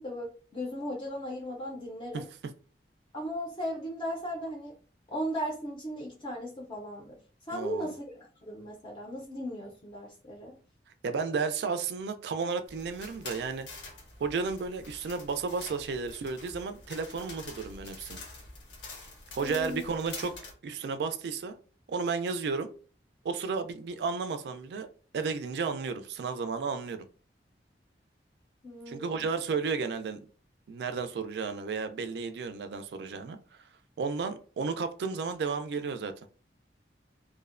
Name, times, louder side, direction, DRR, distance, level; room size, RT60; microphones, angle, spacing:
voice 1, 0.0-2.3 3.1-4.7 5.1-7.2 7.5-10.5 19.4-19.9 28.6-29.2, equal, 30° left, -1 dB, 0.4 m, -37 dB
voice 2, 7.5-7.9 11.0-13.7 14.2-18.2 19.3-20.3 20.6-21.6 21.9-22.7 23.2-24.9 25.1-27.0 28.9-30.2 30.7-33.7 34.0-36.1, right 5 dB, 70° right, 9 dB, 0.3 m, -33 dB
sound 1, 12.7-20.5, left 3 dB, 85° left, 0.7 m, -46 dB
2.5 x 2.0 x 2.4 m, 0.40 s
head